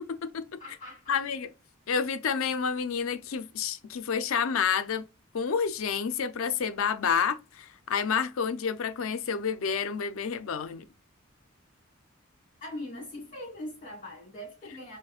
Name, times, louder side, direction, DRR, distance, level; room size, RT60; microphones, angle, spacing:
voice 1, 0.0-0.6 1.1-1.5 1.9-5.1 5.3-10.8, left 6 dB, 80° left, 0.4 m, -29 dB
voice 2, 0.6-1.2 12.6-15.0, left 1 dB, 40° left, 1.4 m, -41 dB
6.4 x 2.1 x 2.3 m
head